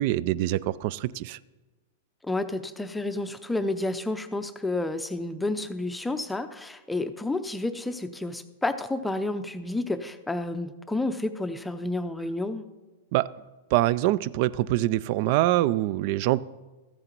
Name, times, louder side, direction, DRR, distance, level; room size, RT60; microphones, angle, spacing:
voice 1, 0.0-1.4 13.1-13.3 13.7-16.4, right 15 dB, 50° right, 20 dB, 0.3 m, -24 dB
voice 2, 2.2-12.6, left 2 dB, 5° left, 9 dB, 0.5 m, -30 dB
14.0 x 7.8 x 4.5 m, 1.2 s
hypercardioid pair, 125°, 0 cm